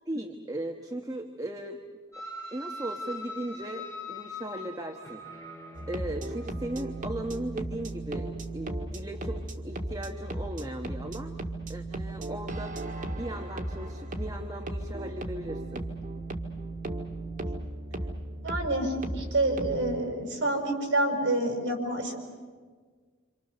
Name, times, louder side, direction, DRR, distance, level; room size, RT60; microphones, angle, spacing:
voice 1, 0.1-1.8 2.5-5.2 5.9-11.3 11.7-12.8 13.1-15.9, right 1 dB, 20° right, 4 dB, 1.2 m, -37 dB
sound 1, 2.1-7.2, left 1 dB, 15° left, 4.6 m, -42 dB
sound 2, 5.7-20.0, right 1 dB, 40° right, 1.9 m, -36 dB
voice 2, 18.4-22.2, right 1 dB, 60° right, 3 dB, 5.7 m, -28 dB
27.5 x 27.0 x 6.8 m, 1.5 s
head